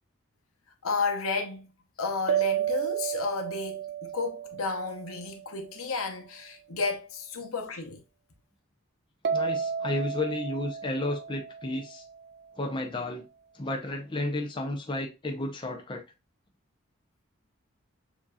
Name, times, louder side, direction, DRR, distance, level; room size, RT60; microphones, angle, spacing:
voice 1, 0.8-1.7 2.0-8.0, left 4 dB, 85° left, 0.9 m, -32 dB
sound 1, 2.3-5.8 9.2-12.3, right 8 dB, 50° right, 0.4 m, -32 dB
voice 2, 9.3-12.0 12.6-13.3 13.5-16.0, left 1 dB, 25° left, 0.5 m, -32 dB
6.9 x 2.7 x 2.3 m
head